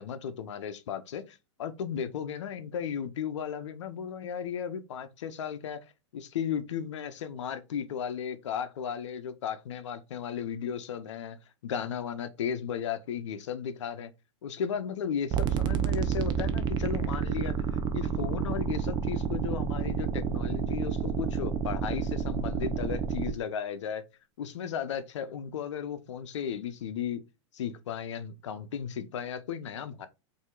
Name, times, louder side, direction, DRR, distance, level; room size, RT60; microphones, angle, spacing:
voice 1, 0.0-5.8 6.1-11.4 11.6-14.1 14.4-17.5 17.9-24.0 24.4-27.3 27.5-30.1, left 8 dB, 80° left, 0.6 m, -35 dB
sound 1, 15.3-23.3, right 7 dB, 30° right, 0.5 m, -30 dB
4.3 x 2.7 x 2.3 m
hypercardioid pair, 115°, 15 cm